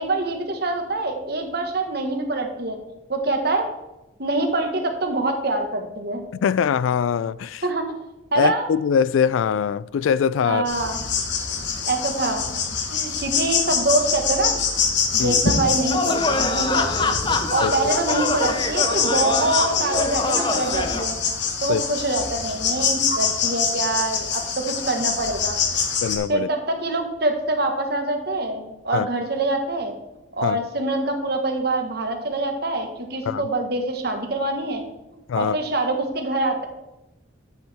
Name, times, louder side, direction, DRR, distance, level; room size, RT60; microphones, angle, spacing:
voice 1, 0.0-2.8 3.1-3.7 4.2-6.2 7.6-7.8 8.3-8.7 10.4-11.0 11.9-12.4 12.9-14.6 15.1-21.2 21.6-25.6 26.3-29.9 30.3-34.8 35.3-36.7, right 2 dB, 50° right, 1.4 m, -25 dB
voice 2, 6.4-7.6 8.4-10.7 15.2-15.4 17.6-17.7 21.7-21.8 26.0-26.5 28.9-29.1 30.4-30.6 33.3-33.4 35.3-35.6, left 7 dB, 80° left, 0.3 m, -22 dB
sound 1, 10.7-26.2, left 6 dB, 60° left, 1.2 m, -25 dB
sound 2, 15.9-21.0, left 3 dB, 25° left, 0.6 m, -25 dB
10.5 x 8.0 x 3.5 m
head